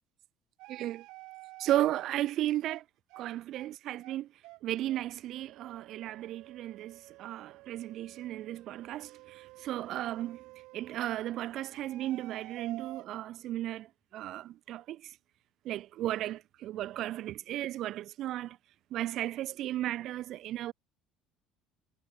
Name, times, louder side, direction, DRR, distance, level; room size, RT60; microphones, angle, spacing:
sound 1, 0.6-2.1 2.7-2.8 3.1-3.3 3.5-3.7 4.0-4.2 4.4-4.6 4.9-5.1 5.3-11.1 11.7-13.1, right 22 dB, 70° right, 5.8 m, -51 dB
voice 1, 0.7-1.0 1.6-2.8 3.2-4.3 4.6-10.4 10.7-15.1 15.6-18.6 18.9-20.7, right 13 dB, 50° right, 0.8 m, -35 dB
cardioid pair, 155°, 0 cm